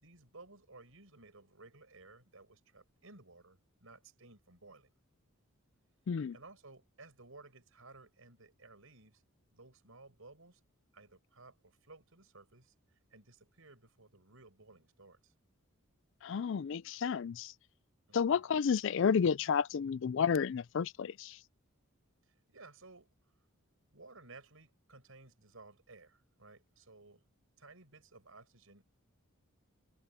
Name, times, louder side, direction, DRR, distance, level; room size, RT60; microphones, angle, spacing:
voice 1, 0.0-4.9 6.3-9.2 9.5-10.6 10.9-15.3 18.1-18.5 22.3-23.1 23.9-27.2 27.6-28.8, right 3 dB, 70° right, 5.5 m, -57 dB
voice 2, 16.2-17.5 18.1-21.4, left 6 dB, 60° left, 0.4 m, -31 dB
head